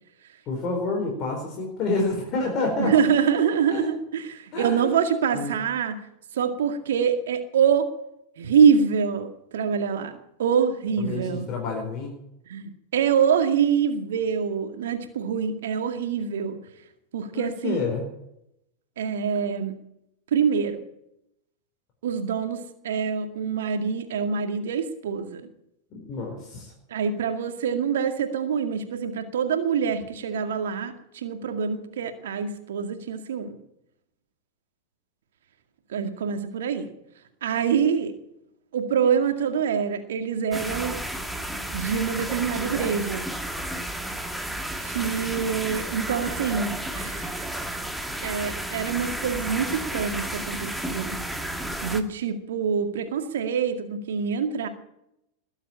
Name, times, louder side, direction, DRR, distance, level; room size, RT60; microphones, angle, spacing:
voice 1, 0.5-2.9 3.7-3.9 4.5-4.9 5.3-5.5 11.0-12.1 17.3-18.1 25.9-26.7, left 3 dB, 35° left, 0 dB, 4.6 m, -28 dB
voice 2, 2.8-6.0 6.3-7.9 8.4-11.5 12.5-16.6 17.1-17.8 19.0-19.8 20.3-20.8 22.0-25.4 26.9-33.6 35.9-36.9 37.4-38.1 38.7-41.0 41.7-43.3 44.8-47.5 48.2-51.2 51.8-54.7, right 7 dB, 60° right, 7 dB, 2.1 m, -25 dB
sound 1, 40.5-52.0, right 1 dB, 5° right, 1.5 m, -32 dB
20.5 x 8.0 x 8.7 m, 0.80 s
figure-of-eight pair, 90°, 0 cm